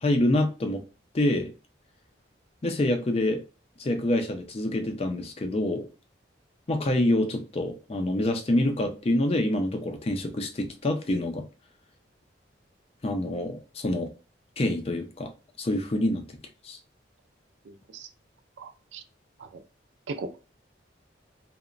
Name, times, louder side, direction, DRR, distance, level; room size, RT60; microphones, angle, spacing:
voice 1, 0.0-0.8 1.1-1.5 2.6-3.4 3.8-5.9 6.7-11.4 13.0-14.1 14.6-15.3 15.6-16.4 16.6-16.8, left 1 dB, 30° left, 0.4 m, -26 dB
voice 2, 17.7-18.1 18.6-19.0 19.4-19.5 20.1-20.5, right 3 dB, 70° right, 0.4 m, -38 dB
2.9 x 2.1 x 2.4 m
head